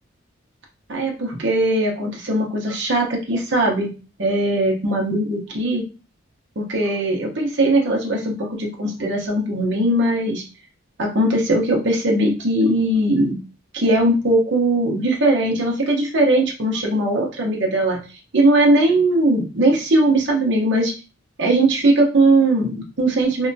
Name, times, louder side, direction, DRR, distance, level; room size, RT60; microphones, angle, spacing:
voice 1, 0.9-3.9 4.2-5.8 6.6-10.4 11.0-13.4 13.7-18.0 18.3-20.9 21.4-23.5, right 1 dB, 60° right, -1 dB, 0.8 m, -19 dB
2.7 x 2.2 x 2.6 m, 0.32 s
head